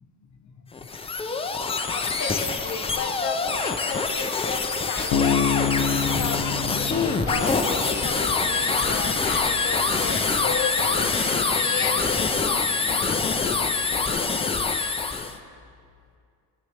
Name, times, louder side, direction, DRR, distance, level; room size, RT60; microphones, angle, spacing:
sound 1, 0.7-15.4, left 4 dB, 15° left, 0.4 m, -25 dB
voice 1, 1.9-5.7 6.1-6.6 6.8-13.0 13.4-13.5, left 5 dB, 45° left, 3 dB, 1.0 m, -33 dB
Bass guitar, 5.1-8.6, left 6 dB, 80° left, 1.0 m, -27 dB
sound 2, 5.2-14.1, right 1 dB, 45° right, 2.8 m, -39 dB
15.5 x 7.7 x 3.5 m, 2.3 s
cardioid pair, 135°, 41 cm